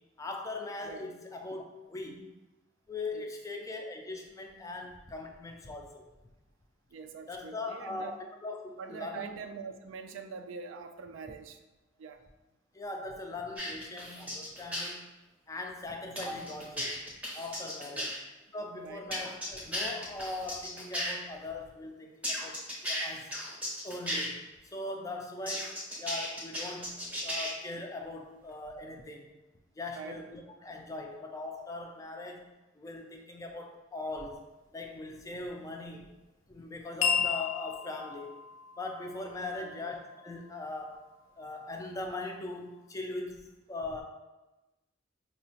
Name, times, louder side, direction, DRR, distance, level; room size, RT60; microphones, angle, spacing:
voice 1, 0.2-2.3 2.9-6.0 7.3-9.3 12.7-15.1 15.5-17.0 17.3-18.1 18.5-23.3 23.8-24.4 24.7-29.3 29.8-32.5 32.8-34.4 34.7-36.1 36.5-38.3 38.8-41.1 41.4-44.0, left 2 dB, 15° left, 3 dB, 0.3 m, -40 dB
voice 2, 0.8-1.1 3.1-3.3 6.9-8.1 8.8-11.6 12.0-12.2 17.9-18.1 18.8-19.0 29.9-30.2 39.6-39.8, right 5 dB, 80° right, 8 dB, 0.3 m, -44 dB
sound 1, 13.6-14.9 16.2-18.2 19.1-21.1 22.2-24.3 25.5-27.5, equal, 5° right, 0.7 m, -35 dB
sound 2, 37.0-41.6, left 6 dB, 85° left, 0.4 m, -35 dB
4.5 x 2.0 x 2.8 m, 1.1 s
head